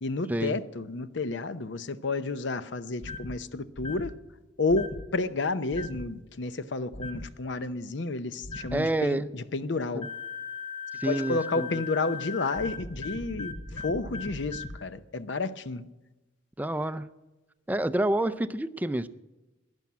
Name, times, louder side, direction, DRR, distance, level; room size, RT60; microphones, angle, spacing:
voice 1, 0.0-4.1 4.6-10.1 11.1-15.9, left 3 dB, 65° left, 0.7 m, -31 dB
sound 1, 3.0-3.4 3.8-4.1 4.7-5.1 5.7-6.1 6.9-7.3 8.4-8.8 10.0-14.8, left 4 dB, 30° left, 0.8 m, -38 dB
voice 2, 8.7-9.3 11.0-11.7 16.6-17.1 17.7-19.1, right 1 dB, 10° right, 0.4 m, -28 dB
11.5 x 11.0 x 8.5 m
head